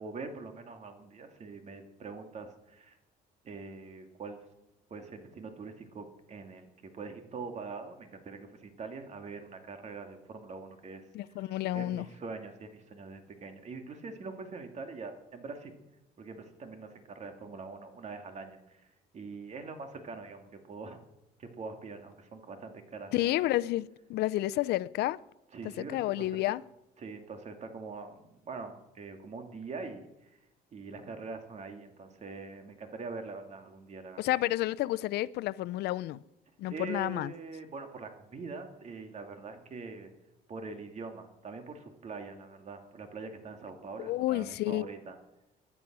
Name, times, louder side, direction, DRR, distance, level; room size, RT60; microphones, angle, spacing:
voice 1, 0.0-3.0 3.4-4.4 4.9-6.7 6.9-11.1 11.4-11.5 11.7-15.7 16.2-18.8 19.1-21.0 21.4-23.3 25.5-26.4 27.0-30.3 30.7-34.3 36.7-40.1 40.5-45.1, right 4 dB, 40° right, 2.5 m, -43 dB
voice 2, 11.1-12.0 23.1-25.2 25.8-26.6 34.2-36.2 36.6-37.3 44.0-44.9, left 16 dB, 75° left, 0.6 m, -30 dB
20.5 x 11.0 x 6.2 m
cardioid pair, 110°, 17 cm